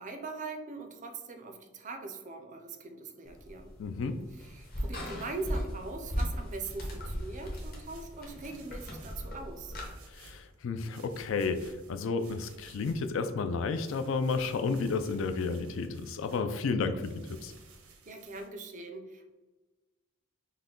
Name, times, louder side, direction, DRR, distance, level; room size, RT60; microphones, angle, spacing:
voice 1, 0.0-3.7 4.5-9.7 18.1-19.3, right 3 dB, 35° right, 6 dB, 0.4 m, -41 dB
sound 1, 3.3-9.9, equal, 40° left, 1.0 m, -38 dB
voice 2, 3.8-4.2 10.1-17.5, left 4 dB, 60° left, 9 dB, 0.3 m, -32 dB
sound 2, 6.6-9.3 9.7-10.5 10.9-13.2 13.6-16.4 17.0-18.5, right 4 dB, 80° right, 0.7 m, -56 dB
5.7 x 2.1 x 3.7 m, 1.2 s
head